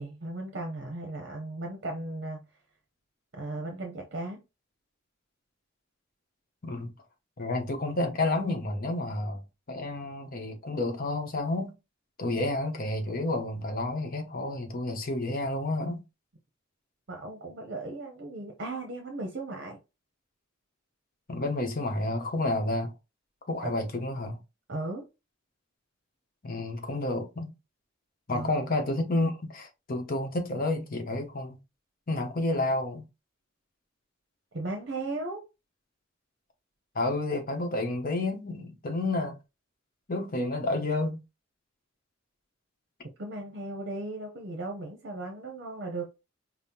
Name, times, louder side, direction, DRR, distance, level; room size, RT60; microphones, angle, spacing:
voice 1, 0.0-2.4 3.3-4.4 17.1-19.8 23.6-23.7 24.7-25.1 28.3-28.7 34.5-35.4 43.2-46.1, right 2 dB, 55° right, 0.7 m, -36 dB
voice 2, 7.4-11.7 12.2-16.0 21.3-22.9 23.5-24.4 26.4-27.5 28.3-31.6 32.1-33.0 36.9-39.4 40.1-41.2, left 2 dB, 45° left, 0.8 m, -30 dB
5.3 x 2.1 x 2.8 m
head